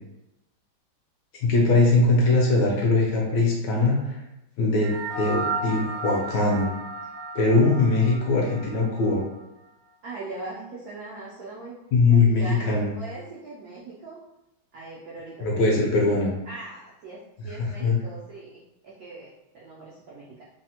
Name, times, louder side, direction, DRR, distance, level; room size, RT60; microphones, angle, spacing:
voice 1, 1.3-4.2 4.6-4.9 5.2-6.7 7.3-9.2 11.9-12.9 15.4-16.3 17.8-18.0, left 3 dB, 75° left, -2 dB, 1.1 m, -21 dB
sound 1, 4.7-9.4, right 2 dB, 60° right, 0.4 m, -34 dB
voice 2, 10.0-11.8 12.0-14.2 14.7-15.8 16.4-20.4, right 3 dB, 80° right, -5 dB, 0.8 m, -40 dB
3.3 x 2.0 x 2.8 m, 0.89 s
omnidirectional pair, 2.2 m